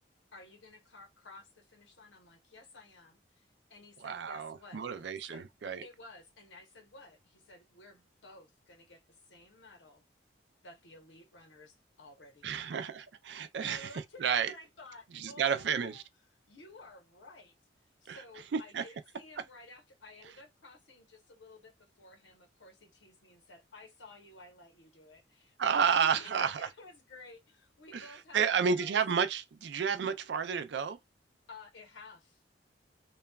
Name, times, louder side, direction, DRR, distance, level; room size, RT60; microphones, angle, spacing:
voice 1, 0.3-5.5 5.8-9.0 9.3-10.0 10.6-12.8 13.6-16.0 16.5-17.5 18.0-29.0 31.5-32.4, left 2 dB, 85° left, 1.0 m, -54 dB
voice 2, 4.0-5.8 12.4-13.9 14.2-14.5 15.1-16.0 18.1-18.2 18.5-18.8 25.6-26.7 27.9-28.1 28.3-31.0, right 6 dB, 65° right, 0.4 m, -31 dB
2.9 x 2.3 x 2.2 m
head